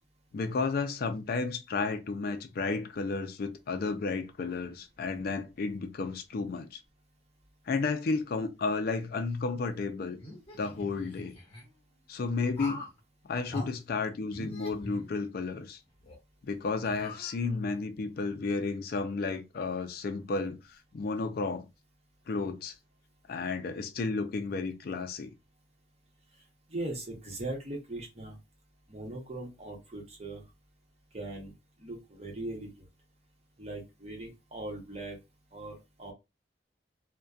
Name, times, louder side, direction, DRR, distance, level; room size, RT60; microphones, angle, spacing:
voice 1, 0.3-6.8 7.7-10.2 10.5-11.4 12.1-12.8 13.2-15.8 16.4-21.7 22.3-22.7 23.3-25.3, left 4 dB, 55° left, 0.4 m, -32 dB
sound 1, 10.2-11.6 12.5-13.0 13.5-13.7 14.3-15.6 16.0-16.2 16.8-17.7, left 1 dB, 30° left, 1.0 m, -43 dB
voice 2, 26.7-28.4 28.9-30.4 31.1-31.5 31.8-32.9 33.6-35.2 35.5-36.1, right 2 dB, 35° right, 0.9 m, -39 dB
2.6 x 2.1 x 2.3 m
head